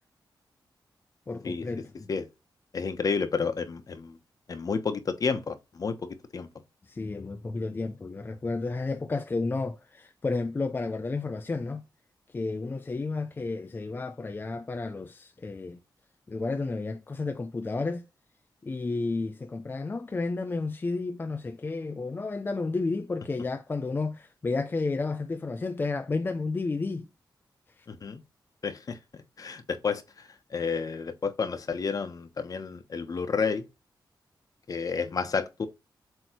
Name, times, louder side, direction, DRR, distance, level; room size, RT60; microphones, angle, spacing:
voice 1, 1.3-2.1 6.9-11.8 12.3-15.8 16.3-18.0 18.6-27.1, left 3 dB, 25° left, 0.5 m, -32 dB
voice 2, 2.7-4.2 4.5-6.5 27.9-28.2 28.6-33.6 34.7-35.7, left 5 dB, 50° left, 1.1 m, -31 dB
7.9 x 3.1 x 4.5 m
wide cardioid pair, 150°, 8 cm